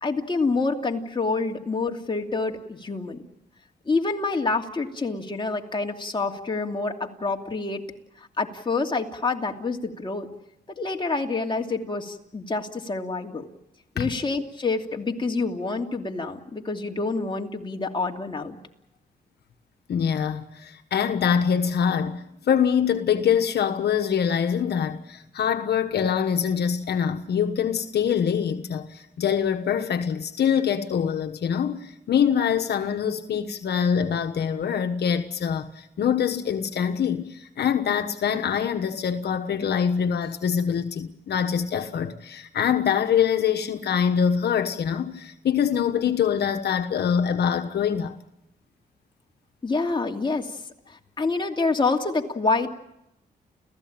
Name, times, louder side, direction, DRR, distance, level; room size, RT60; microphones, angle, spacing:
voice 1, 0.0-3.2 3.9-7.8 8.2-10.3 10.7-13.5 13.9-18.6 49.6-50.6 50.9-52.7, left 3 dB, 30° left, 2.8 m, -27 dB
voice 2, 19.9-48.1, left 8 dB, 80° left, 1.3 m, -24 dB
30.0 x 15.5 x 8.9 m
cardioid pair, 80°, 17 cm